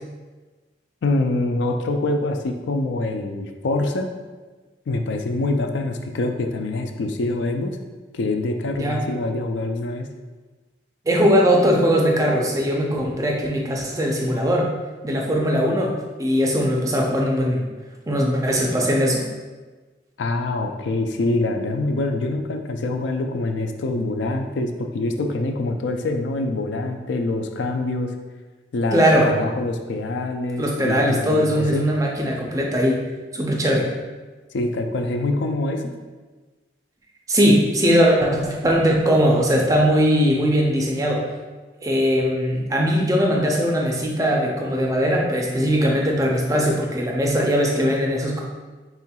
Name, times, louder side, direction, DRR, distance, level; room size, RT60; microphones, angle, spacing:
voice 1, 1.0-4.1 4.9-7.8 8.1-10.1 20.2-28.1 28.7-31.9 34.5-35.9, left 2 dB, 75° left, 5 dB, 0.4 m, -25 dB
voice 2, 11.1-14.7 15.0-15.9 16.2-17.7 18.1-19.3 28.9-29.3 30.6-33.1 33.3-33.9 37.3-41.2 41.8-48.4, equal, 20° right, -1 dB, 0.4 m, -20 dB
4.3 x 3.6 x 2.3 m, 1.3 s
head